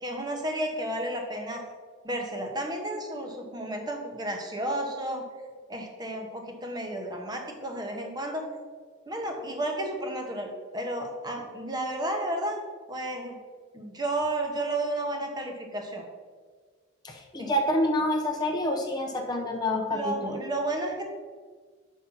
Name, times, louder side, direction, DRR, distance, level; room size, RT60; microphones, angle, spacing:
voice 1, 0.0-1.6 2.0-5.2 5.7-8.5 9.1-10.5 10.7-12.6 12.9-13.3 13.7-16.0 17.4-17.5 19.9-21.0, right 1 dB, 20° right, 2 dB, 0.9 m, -32 dB
voice 2, 17.0-20.4, left 1 dB, 20° left, 1 dB, 0.6 m, -27 dB
5.5 x 5.0 x 5.9 m, 1.5 s
head